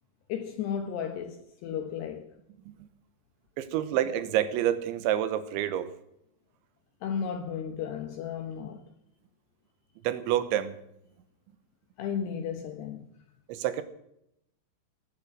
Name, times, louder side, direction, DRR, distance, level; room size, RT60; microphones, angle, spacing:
voice 1, 0.3-2.4 7.0-8.8 12.0-13.1, left 7 dB, 70° left, 3.0 m, -34 dB
voice 2, 3.6-5.9 10.0-10.7 13.5-13.8, right 11 dB, 85° right, 3.4 m, -28 dB
18.5 x 10.0 x 7.7 m
omnidirectional pair, 5.3 m